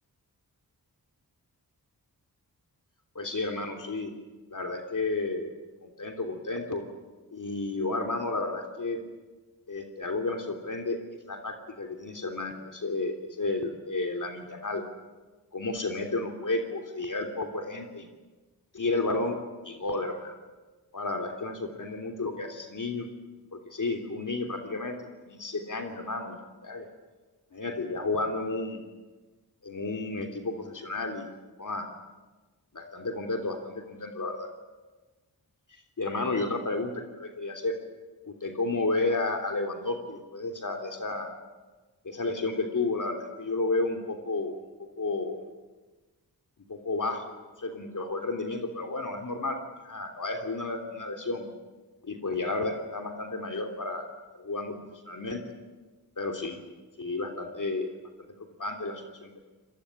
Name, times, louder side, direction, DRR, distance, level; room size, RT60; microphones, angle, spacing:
voice 1, 3.1-4.1 4.5-5.5 5.8-6.8 7.3-9.0 9.7-11.0 11.3-14.8 15.5-18.1 18.7-19.4 19.6-20.3 20.9-23.1 23.5-25.0 25.3-26.9 27.5-28.8 29.6-31.3 31.6-31.9 32.7-34.5 36.0-37.8 38.3-41.3 42.0-44.5 45.0-45.4 46.7-47.3 47.6-49.6 49.8-51.5 52.0-54.1 54.3-54.8 55.1-55.4 56.2-56.6 57.0-57.9 58.6-59.3, left 3 dB, 55° left, 4 dB, 3.3 m, -32 dB
25.5 x 20.0 x 10.0 m, 1.3 s
cardioid pair, 60°, 38 cm